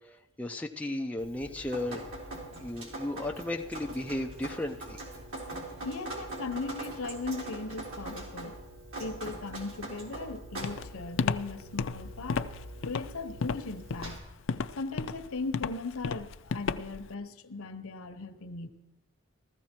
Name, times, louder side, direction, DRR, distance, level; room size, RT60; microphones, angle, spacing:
voice 1, 0.4-2.0 2.6-5.0, left 1 dB, 5° left, 2 dB, 0.6 m, -34 dB
Drip, 1.2-14.2, right 1 dB, 80° right, 3.8 m, -42 dB
voice 2, 5.8-8.6 9.0-12.5 12.9-14.3 14.8-18.7, left 3 dB, 85° left, 9 dB, 1.0 m, -38 dB
Walk footsteps, 10.6-17.1, left 5 dB, 60° left, 0.4 m, -33 dB
15.0 x 14.0 x 4.5 m, 1.0 s
head